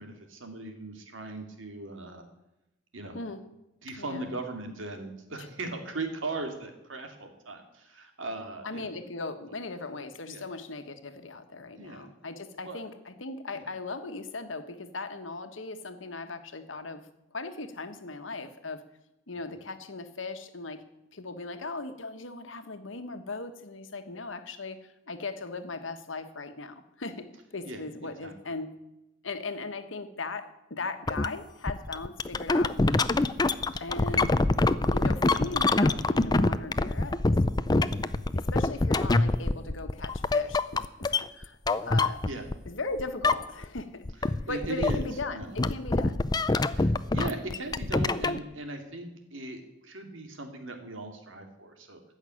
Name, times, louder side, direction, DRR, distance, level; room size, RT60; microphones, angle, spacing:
voice 1, 0.0-2.2 2.9-3.2 3.8-8.9 10.3-10.4 11.7-12.1 12.6-12.8 13.5-13.6 27.7-27.8 28.2-28.3 33.7-33.8 34.1-34.3 42.3-42.4 44.5-45.0 45.3-45.6 46.7-52.1, right 2 dB, 90° right, 4 dB, 2.5 m, -38 dB
voice 2, 4.0-4.4 5.4-5.5 8.6-17.0 17.3-18.8 19.3-20.8 21.1-28.7 29.2-32.8 33.8-34.3 34.9-37.4 38.3-41.6 41.8-42.2 42.6-46.5, left 3 dB, 85° left, 8 dB, 1.4 m, -38 dB
sound 1, 31.1-31.3 31.7-42.7 43.0-43.8 44.1-48.4, left 2 dB, 20° left, 0.5 m, -25 dB
15.0 x 6.5 x 9.7 m, 0.91 s
head